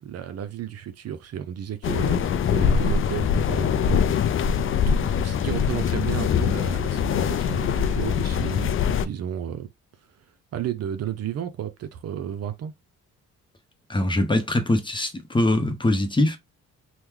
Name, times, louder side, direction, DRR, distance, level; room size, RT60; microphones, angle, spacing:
voice 1, 0.0-3.8 4.9-9.7 10.5-12.7, right 10 dB, 55° right, 0.6 m, -33 dB
sound 1, 1.8-9.1, left 7 dB, 45° left, 0.4 m, -23 dB
voice 2, 13.9-16.4, left 1 dB, 15° left, 0.8 m, -22 dB
3.0 x 2.2 x 3.6 m
cardioid pair, 90°, 30 cm